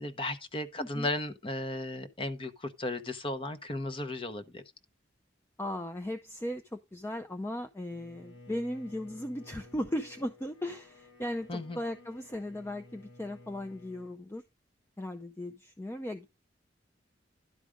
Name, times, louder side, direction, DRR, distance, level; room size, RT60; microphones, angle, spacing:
voice 1, 0.0-4.6 11.5-11.8, left 2 dB, 30° left, 0.9 m, -35 dB
voice 2, 0.8-1.1 5.6-14.4 15.0-16.3, left 1 dB, 15° left, 0.4 m, -37 dB
Bowed string instrument, 7.9-14.2, left 2 dB, 75° left, 3.2 m, -54 dB
11.5 x 4.8 x 5.0 m
head